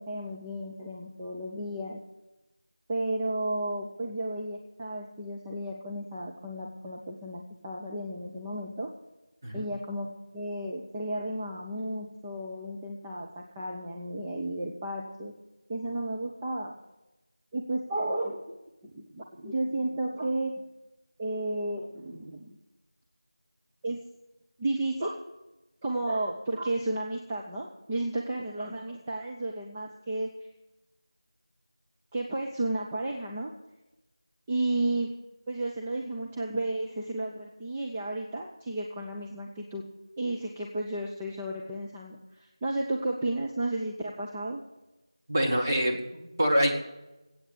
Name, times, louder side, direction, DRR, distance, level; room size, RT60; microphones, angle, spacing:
voice 1, 0.0-2.0 2.9-8.9 9.5-15.3 15.7-16.7 17.5-18.5 18.8-20.6 21.2-22.6 23.8-24.0 24.6-25.2 25.8-30.3 32.1-33.5 34.5-35.1 35.5-39.8 40.2-44.6, right 1 dB, 10° right, -3 dB, 0.5 m, -33 dB
voice 2, 45.3-46.8, equal, 30° right, 0 dB, 2.1 m, -26 dB
13.5 x 8.6 x 8.4 m, 1.0 s
figure-of-eight pair, 170°, 3 cm